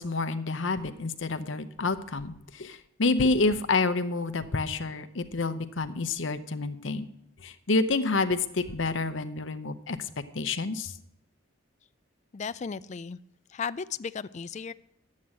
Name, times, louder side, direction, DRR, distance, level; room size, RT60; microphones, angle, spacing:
voice 1, 0.0-7.0 7.4-10.0 10.3-10.9, left 3 dB, 60° left, 11 dB, 0.8 m, -28 dB
voice 2, 12.3-13.2 13.5-14.7, left 6 dB, 35° left, 15 dB, 0.4 m, -35 dB
11.0 x 8.5 x 7.6 m, 0.79 s
head